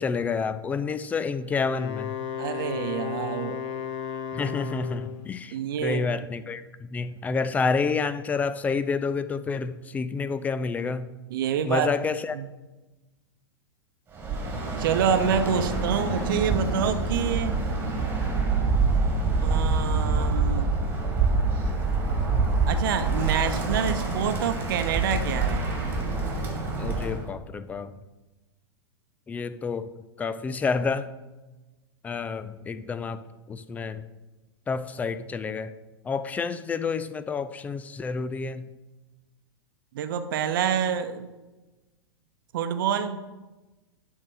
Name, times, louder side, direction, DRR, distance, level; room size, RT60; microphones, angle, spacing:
voice 1, 0.0-2.1 4.3-11.1 11.6-12.4 26.8-27.9 29.3-29.9 30.2-31.1 32.0-34.1 34.7-35.8 36.0-38.7, left 5 dB, 10° left, 13 dB, 0.4 m, -29 dB
Wind instrument woodwind instrument, 1.5-5.3, left 9 dB, 35° left, 0.8 m, -34 dB
voice 2, 2.4-3.6 5.5-6.0 11.3-11.9 12.3-12.5 14.8-17.6 19.4-20.7 22.7-25.6 39.9-41.3 42.5-43.2, right 8 dB, 50° right, 9 dB, 0.9 m, -27 dB
Bird, 14.1-27.2, right 3 dB, 15° right, 1.9 m, -26 dB
11.0 x 3.7 x 6.4 m, 1.1 s
figure-of-eight pair, 100°, 14 cm